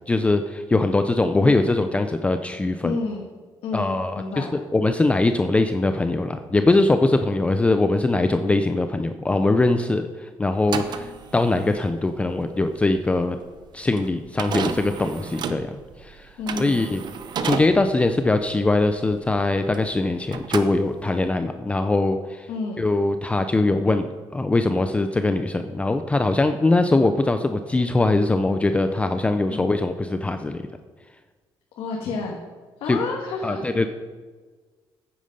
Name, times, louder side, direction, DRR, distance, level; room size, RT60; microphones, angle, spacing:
voice 1, 0.1-3.0 3.7-13.4 13.7-15.7 16.0-16.3 16.6-17.0 17.4-22.5 22.8-30.6 32.9-33.0 33.4-33.9, left 2 dB, 15° left, 8 dB, 0.4 m, -22 dB
voice 2, 1.4-1.7 2.8-3.3 3.6-4.5 16.4-16.8 22.5-22.8 29.5-29.7 31.8-32.3 32.8-33.7, left 3 dB, 85° left, -1 dB, 1.5 m, -30 dB
sound 1, 10.6-20.0 20.3-21.3, right 6 dB, 55° right, 0.7 m, -32 dB
9.4 x 8.6 x 5.3 m, 1.4 s
cardioid pair, 140°, 9 cm